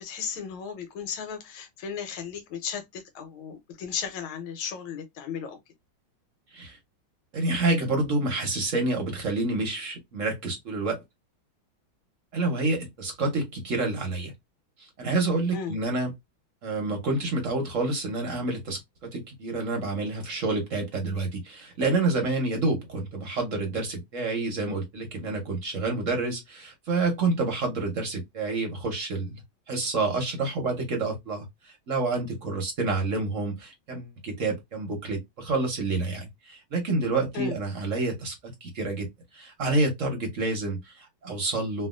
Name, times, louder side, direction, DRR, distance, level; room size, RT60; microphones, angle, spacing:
voice 1, 0.0-5.6 15.5-15.8 37.3-37.5, left 7 dB, 85° left, 1.6 m, -35 dB
voice 2, 7.3-11.0 12.3-14.3 14.8-16.1 16.6-29.4 29.7-39.1 39.3-41.9, right 2 dB, 50° right, 1.0 m, -28 dB
3.4 x 2.4 x 2.3 m
omnidirectional pair, 2.3 m